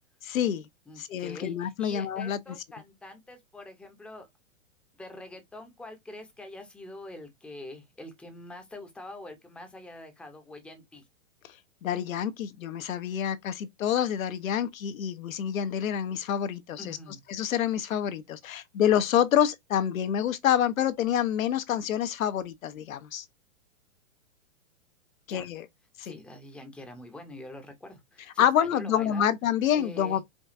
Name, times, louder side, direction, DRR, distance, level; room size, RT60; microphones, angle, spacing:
voice 1, 0.2-0.7 1.0-2.4 11.8-17.0 17.3-23.2 25.3-25.6 26.0-26.2 28.4-30.2, left 10 dB, 80° left, 0.9 m, -27 dB
voice 2, 0.9-4.3 5.0-11.0 16.8-17.2 25.3-25.5 26.0-29.2 29.7-30.2, left 1 dB, 5° left, 0.6 m, -45 dB
5.1 x 2.4 x 2.6 m
hypercardioid pair, 145°, 40 cm